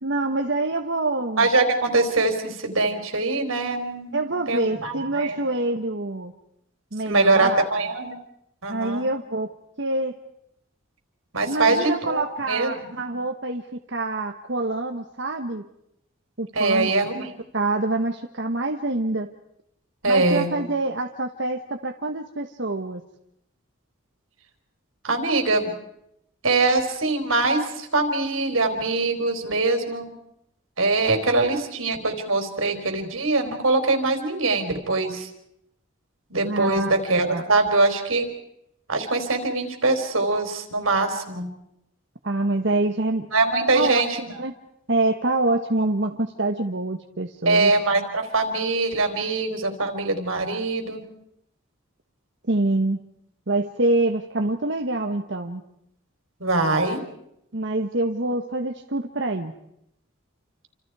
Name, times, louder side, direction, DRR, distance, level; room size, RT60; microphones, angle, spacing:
voice 1, 0.0-1.5 4.1-6.3 6.9-7.6 8.7-9.5 9.8-10.2 11.4-15.6 16.4-16.9 17.5-19.3 20.1-23.0 36.4-36.9 37.3-37.4 42.2-43.3 43.7-44.0 44.4-44.5 44.9-47.7 52.5-53.0 53.5-55.6 57.5-59.5, right 2 dB, 60° right, 4 dB, 1.3 m, -26 dB
voice 2, 1.4-5.4 7.0-8.2 8.6-9.1 11.3-13.0 16.5-17.3 20.0-20.5 25.0-25.7 26.4-30.1 30.8-35.3 36.3-38.3 38.9-41.5 43.3-44.4 47.5-51.0 56.4-57.0, right 3 dB, 90° right, 5 dB, 4.2 m, -23 dB
29.0 x 26.5 x 4.8 m, 0.80 s
head